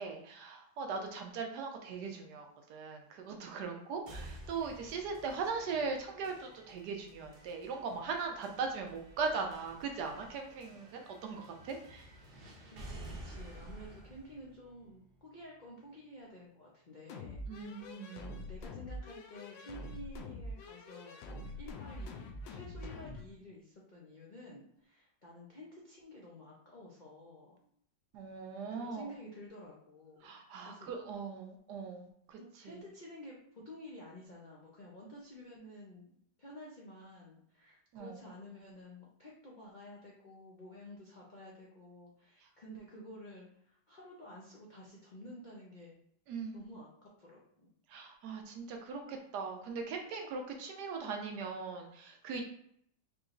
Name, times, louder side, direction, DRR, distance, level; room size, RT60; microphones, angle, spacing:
voice 1, 0.0-12.1 17.5-18.3 28.1-29.1 30.2-32.8 37.9-38.2 46.3-46.6 47.9-52.4, right 5 dB, 75° right, 3 dB, 1.2 m, -40 dB
sound 1, 4.1-16.0, right 1 dB, 45° right, 0.8 m, -52 dB
voice 2, 12.7-22.2 22.5-27.6 28.7-30.3 30.6-30.9 32.4-36.1 36.4-45.9 46.5-47.7, equal, 65° left, -4 dB, 0.4 m, -51 dB
sound 2, 17.1-23.3, left 2 dB, 90° left, 1.3 m, -45 dB
4.8 x 2.9 x 2.5 m, 0.69 s
omnidirectional pair, 1.9 m